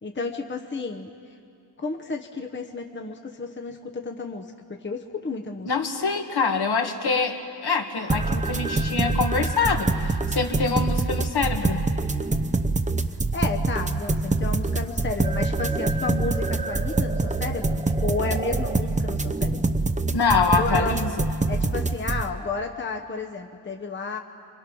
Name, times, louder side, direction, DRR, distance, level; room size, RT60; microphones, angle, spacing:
voice 1, 0.0-1.1 1.8-5.7 13.3-19.6 20.5-21.0 21.5-24.2, left 3 dB, 25° left, 3 dB, 1.0 m, -32 dB
voice 2, 5.7-11.8 20.1-21.1, left 4 dB, 65° left, 3 dB, 2.0 m, -25 dB
sound 1, 8.1-22.2, right 3 dB, 15° right, 0.7 m, -25 dB
29.0 x 24.0 x 6.2 m, 2.6 s
wide cardioid pair, 140°, 43 cm